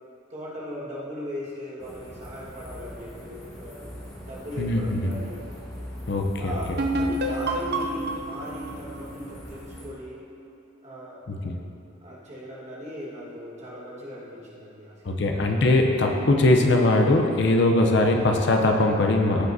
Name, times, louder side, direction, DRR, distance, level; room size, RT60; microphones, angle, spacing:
voice 1, 0.3-3.9 4.2-5.5 6.4-10.2 10.8-11.2 12.0-15.6, equal, 35° right, -6 dB, 1.7 m, -38 dB
sound 1, 1.8-9.9, equal, 20° left, 1.3 m, -41 dB
voice 2, 4.6-5.1 6.1-6.8 11.3-11.6 15.0-19.5, left 2 dB, 60° left, 2 dB, 0.6 m, -21 dB
sound 2, 6.8-10.4, right 1 dB, 55° right, 0.5 m, -29 dB
15.0 x 5.0 x 2.7 m, 2.8 s
head